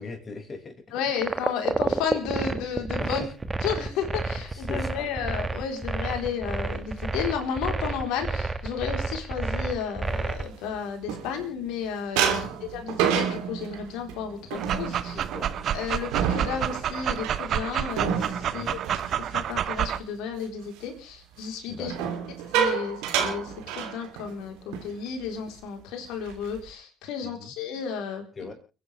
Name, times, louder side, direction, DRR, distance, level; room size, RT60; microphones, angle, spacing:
voice 1, 0.0-1.4 3.0-3.3 4.5-5.1 6.1-6.2 12.2-12.6 14.4-14.5 15.0-15.5 18.4-18.7 21.7-22.1 27.2-27.5 28.4-28.5, left 3 dB, 35° left, 3 dB, 5.7 m, -41 dB
voice 2, 0.9-3.2 3.6-12.5 12.7-15.2 15.7-18.8 19.2-21.9 22.5-28.2, left 7 dB, 70° left, 4 dB, 4.0 m, -32 dB
sound 1, 1.2-10.5, right 3 dB, 25° right, 1.7 m, -29 dB
sound 2, 10.3-11.7 12.2-20.0 20.3-20.7 21.8-24.4 24.7-24.9 25.2-25.5 26.0-26.7, right 8 dB, 70° right, 3.1 m, -30 dB
Dog, 14.5-20.0, right 9 dB, 55° right, 1.1 m, -29 dB
29.5 x 10.0 x 3.4 m, 0.35 s
hypercardioid pair, 55°, 0 cm